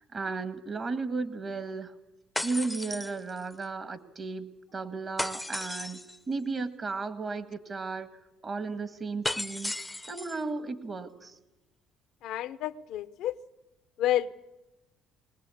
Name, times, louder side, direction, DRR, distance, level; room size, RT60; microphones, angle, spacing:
voice 1, 0.0-1.9 2.4-6.0 6.3-8.1 8.4-9.7 10.1-11.4, right 4 dB, 35° right, 11 dB, 1.8 m, -34 dB
sound 1, 2.4-3.6 5.2-6.2 9.2-10.4, left 2 dB, 10° left, 0.7 m, -35 dB
voice 2, 12.2-13.3 14.0-14.3, left 12 dB, 70° left, 14 dB, 0.7 m, -29 dB
20.5 x 20.0 x 8.5 m, 1.0 s
supercardioid pair, 70°, 0 cm